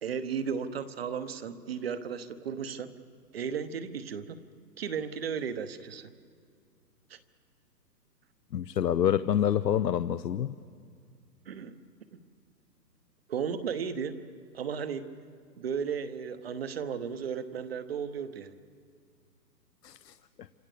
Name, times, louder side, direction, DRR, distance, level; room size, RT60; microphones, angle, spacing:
voice 1, 0.0-2.9 3.3-4.4 4.8-6.1 7.1-7.2 11.5-11.7 13.3-14.2 14.5-15.0 15.6-18.6, right 7 dB, 35° right, 11 dB, 1.1 m, -34 dB
voice 2, 8.5-10.5 19.8-20.1, left 10 dB, 70° left, 12 dB, 0.8 m, -27 dB
27.5 x 26.0 x 6.8 m, 2.1 s
hypercardioid pair, 165°, 50 cm